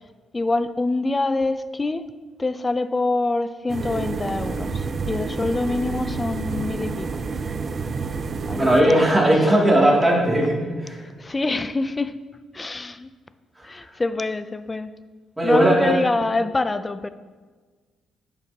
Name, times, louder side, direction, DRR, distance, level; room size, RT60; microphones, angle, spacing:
voice 1, 0.3-2.0 2.4-7.2 8.4-9.1 11.2-12.2 12.5-13.1 13.6-14.9 15.4-17.1, left 2 dB, 20° left, 13 dB, 0.4 m, -25 dB
sound 1, 3.7-8.8, right 4 dB, 40° right, 0.4 m, -29 dB
voice 2, 8.5-11.0 13.6-13.7 15.4-16.0, right 1 dB, 10° right, -4 dB, 2.4 m, -18 dB
10.5 x 6.6 x 2.8 m, 1.4 s
cardioid pair, 90°, 0 cm